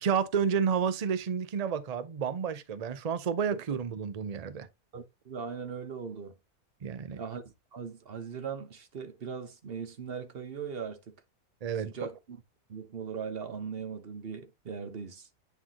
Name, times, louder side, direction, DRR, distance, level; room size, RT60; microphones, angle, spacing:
voice 1, 0.0-4.7 6.8-7.2 11.6-12.1, right 7 dB, 70° right, 0.3 m, -30 dB
voice 2, 4.9-6.3 7.2-7.4 7.7-11.1 11.8-12.4 12.7-15.3, right 6 dB, 45° right, 1.1 m, -39 dB
9.2 x 3.9 x 2.9 m
omnidirectional pair, 1.6 m